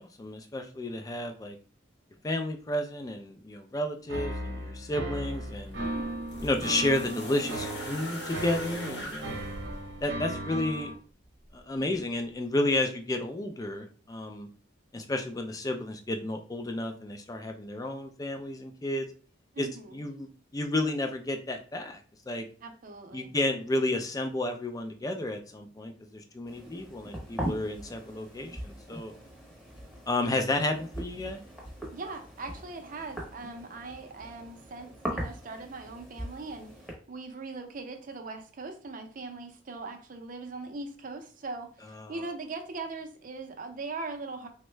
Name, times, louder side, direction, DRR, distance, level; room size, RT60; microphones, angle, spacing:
voice 1, 0.0-1.6 2.2-5.8 6.4-9.4 10.0-10.9 11.5-14.5 14.9-19.1 19.6-22.0 22.3-22.5 23.1-29.1 30.1-31.4 41.9-42.1, left 1 dB, 20° left, 0.4 m, -32 dB
sound 1, 4.1-10.9, right 1 dB, 75° right, 0.8 m, -37 dB
sound 2, 5.3-10.5 11.6-11.7, equal, 65° left, 0.8 m, -40 dB
voice 2, 5.8-6.2 19.5-20.0 22.6-23.3 31.9-36.7 37.1-44.5, right 3 dB, 45° right, 0.5 m, -40 dB
sound 3, 26.4-36.9, equal, 5° left, 0.8 m, -40 dB
3.5 x 2.1 x 3.1 m
head